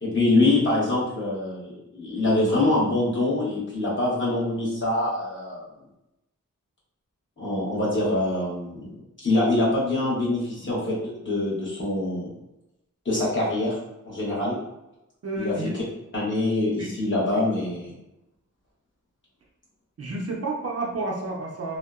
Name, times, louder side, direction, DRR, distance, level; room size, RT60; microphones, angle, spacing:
voice 1, 0.0-5.7 7.4-8.9 9.2-12.3 13.0-13.8 14.0-14.5 15.4-15.5 16.1-17.9, left 2 dB, 40° left, -7 dB, 1.0 m, -24 dB
voice 2, 15.2-15.7 16.8-16.9 20.0-21.8, right 2 dB, 50° right, -2 dB, 0.5 m, -30 dB
2.7 x 2.0 x 2.3 m, 0.91 s
wide cardioid pair, 100°, 31 cm